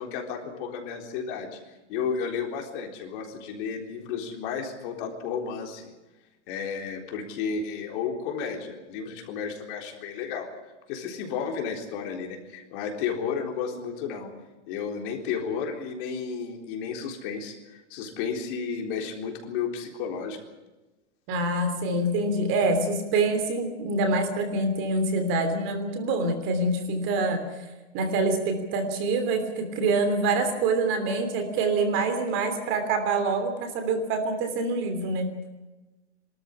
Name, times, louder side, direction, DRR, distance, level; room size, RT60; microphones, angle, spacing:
voice 1, 0.0-1.6 1.9-5.9 6.5-10.5 10.9-14.3 14.7-20.4, left 6 dB, 45° left, 3 dB, 3.9 m, -32 dB
voice 2, 21.3-27.4 27.9-35.3, right 3 dB, 35° right, 7 dB, 3.2 m, -26 dB
24.0 x 13.5 x 10.0 m, 1.1 s
supercardioid pair, 150°, 35 cm